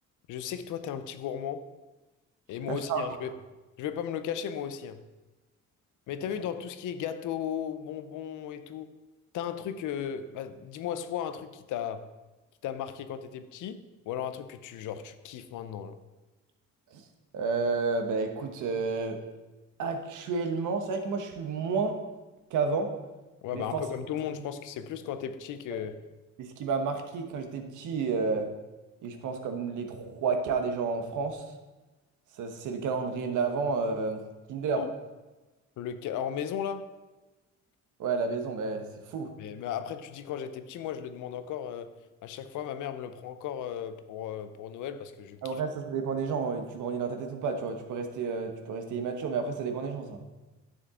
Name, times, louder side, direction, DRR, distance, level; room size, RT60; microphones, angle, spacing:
voice 1, 0.3-1.7 2.5-3.4 3.8-5.0 6.1-8.9 9.3-12.1 12.6-16.0 23.4-26.0 34.8-34.9 35.8-36.9 39.4-41.9 42.2-45.6, left 9 dB, 85° left, 11 dB, 0.7 m, -36 dB
voice 2, 2.7-3.1 16.9-17.0 17.3-19.2 19.8-22.0 22.5-22.9 23.5-23.8 24.3-24.5 25.7-25.8 26.4-28.5 29.0-31.4 32.4-34.2 34.5-34.8 38.0-39.3 45.4-50.2, right 4 dB, 80° right, 5 dB, 1.2 m, -31 dB
10.0 x 7.1 x 3.7 m, 1.1 s
cardioid pair, 90°, 30 cm